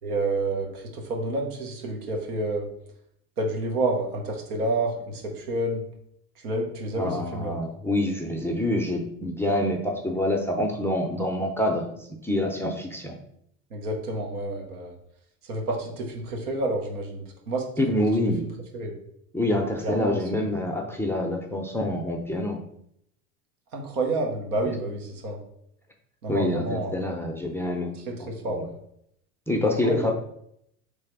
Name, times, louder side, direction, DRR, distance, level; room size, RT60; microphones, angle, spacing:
voice 1, 0.0-2.7 3.4-5.9 6.4-7.6 9.5-9.6 13.7-14.9 15.4-17.7 18.2-18.3 18.7-18.9 19.8-20.5 23.7-25.4 26.2-26.9 27.9-28.7 29.5-30.1, right 2 dB, 80° right, 0 dB, 1.3 m, -29 dB
voice 2, 7.0-11.8 12.2-13.2 17.8-18.4 19.3-22.6 26.3-27.9 28.2-28.6 29.5-30.1, left 1 dB, 5° left, 1 dB, 0.5 m, -26 dB
3.4 x 3.4 x 4.6 m, 0.72 s
hypercardioid pair, 90°, 45 cm